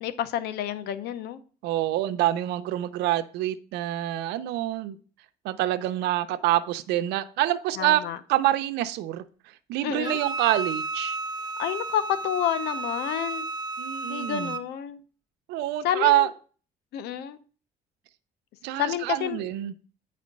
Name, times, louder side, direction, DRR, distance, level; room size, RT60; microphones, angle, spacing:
voice 1, 0.0-1.4 7.8-8.2 9.8-10.2 11.6-13.5 14.1-15.0 15.8-16.3 16.9-17.4 18.8-19.4, left 10 dB, 75° left, 0.8 m, -29 dB
voice 2, 1.6-5.0 5.4-8.0 8.3-9.2 9.7-11.2 13.8-14.5 15.5-16.3 18.6-19.7, right 14 dB, 85° right, 0.6 m, -26 dB
Wind instrument woodwind instrument, 10.0-14.7, right 3 dB, 25° right, 0.6 m, -33 dB
9.2 x 4.3 x 5.2 m
cardioid pair, 110°, 17 cm